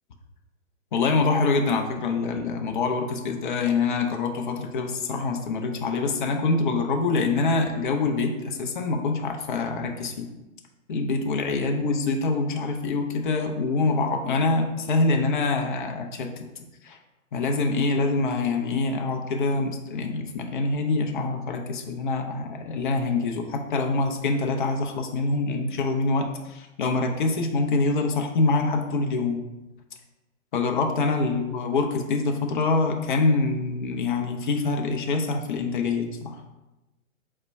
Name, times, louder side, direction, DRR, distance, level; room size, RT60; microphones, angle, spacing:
voice 1, 0.9-10.3 10.9-16.3 16.8-17.0 17.3-29.4 30.5-36.4, left 3 dB, 40° left, 3 dB, 0.5 m, -25 dB
4.1 x 2.1 x 4.4 m, 1.0 s
hypercardioid pair, 145°, 40 cm